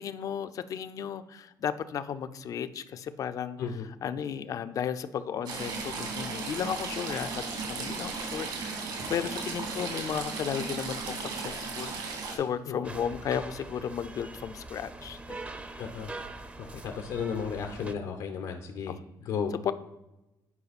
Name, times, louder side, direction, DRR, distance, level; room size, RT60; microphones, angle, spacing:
voice 1, 0.0-3.6 4.0-15.4 18.9-19.0 19.6-19.7, left 8 dB, 50° left, 12 dB, 0.5 m, -34 dB
Stream / Trickle dribble, 5.5-12.4, right 4 dB, 75° right, 2.4 m, -35 dB
sound 1, 12.8-17.9, right 2 dB, 20° right, 0.6 m, -43 dB
voice 2, 15.8-16.1 16.6-19.0 19.2-19.5, left 6 dB, 80° left, 5 dB, 0.8 m, -34 dB
9.7 x 5.1 x 4.1 m, 0.98 s
cardioid pair, 135°, 7 cm